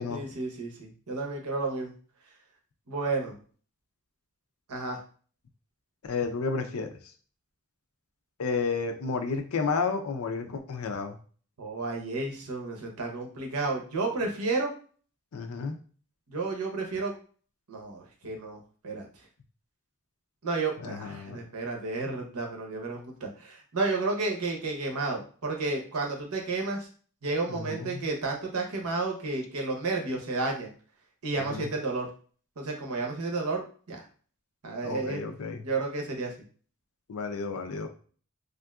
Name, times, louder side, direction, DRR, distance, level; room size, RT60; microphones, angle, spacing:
voice 1, 0.1-1.9 2.9-3.4 4.7-5.0 11.6-14.7 16.3-17.1 17.7-19.1 20.4-26.9 27.2-30.7 31.2-32.1 32.6-34.0 34.6-35.2 35.6-36.3, right 3 dB, 85° right, 2 dB, 0.8 m, -32 dB
voice 2, 6.0-6.9 8.4-11.2 15.3-15.8 20.8-21.4 27.5-28.1 31.4-31.7 34.8-35.7 37.1-37.9, left 4 dB, 70° left, 7 dB, 0.5 m, -32 dB
3.5 x 2.5 x 2.3 m, 0.42 s
head